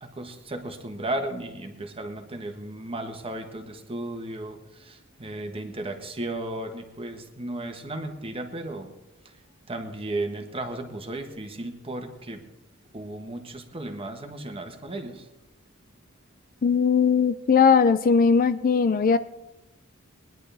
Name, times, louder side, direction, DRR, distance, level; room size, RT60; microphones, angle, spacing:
voice 1, 0.0-8.9 9.7-12.4 12.9-15.3, right 1 dB, 25° right, 5 dB, 1.3 m, -35 dB
voice 2, 16.6-19.2, left 5 dB, 40° left, 12 dB, 0.4 m, -19 dB
20.5 x 10.5 x 3.4 m, 0.96 s
head